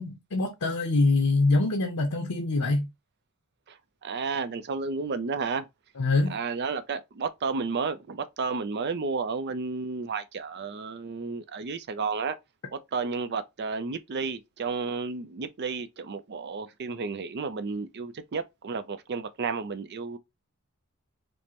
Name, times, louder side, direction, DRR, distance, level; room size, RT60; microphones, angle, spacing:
voice 1, 0.0-2.9 6.0-6.4, left 3 dB, 85° left, 0.8 m, -24 dB
voice 2, 3.7-5.7 6.3-12.4 12.7-20.2, right 4 dB, 50° right, 0.5 m, -32 dB
5.1 x 2.1 x 2.8 m
head